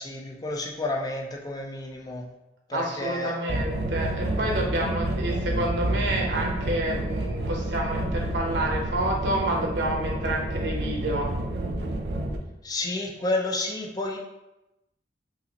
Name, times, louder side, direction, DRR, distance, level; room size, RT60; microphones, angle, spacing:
voice 1, 0.0-2.2 2.7-3.6 12.6-14.2, left 2 dB, 20° left, 0 dB, 0.4 m, -30 dB
voice 2, 2.7-11.3, right 1 dB, 90° right, 0 dB, 0.7 m, -29 dB
sound 1, 3.5-12.4, right 1 dB, 65° right, 0.4 m, -29 dB
4.9 x 2.0 x 2.7 m, 0.95 s
head